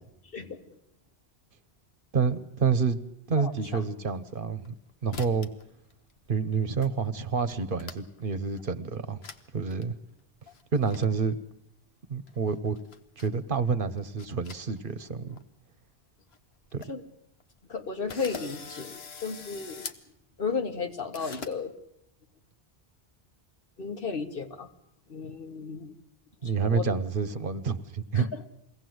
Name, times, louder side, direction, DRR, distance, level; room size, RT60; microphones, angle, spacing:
voice 1, 0.3-0.6 3.4-3.8 16.9-17.0 17.7-19.8 20.4-21.7 23.8-24.7 25.1-25.9 26.6-26.9 28.1-28.5, left 5 dB, 65° left, 7 dB, 1.5 m, -34 dB
voice 2, 2.1-3.0 3.3-4.7 5.0-5.5 6.3-9.2 9.5-9.9 10.7-11.4 12.1-12.8 13.2-15.4 16.7-16.8 26.4-28.2, right 5 dB, 60° right, 12 dB, 1.1 m, -28 dB
sound 1, 4.2-4.8 5.1-5.6 5.9-6.4 6.8-6.9 7.2-8.2 8.6-8.7 9.2-9.4 9.7-9.8 10.5-11.1 12.3-13.4 13.9-15.0 15.3-15.4 16.0-16.1 16.3-16.4 16.6-16.9 17.4-17.5 18.1-20.0 21.1-21.5, left 5 dB, 90° left, 1.4 m, -43 dB
22.5 x 17.0 x 7.9 m, 0.77 s
omnidirectional pair, 1.0 m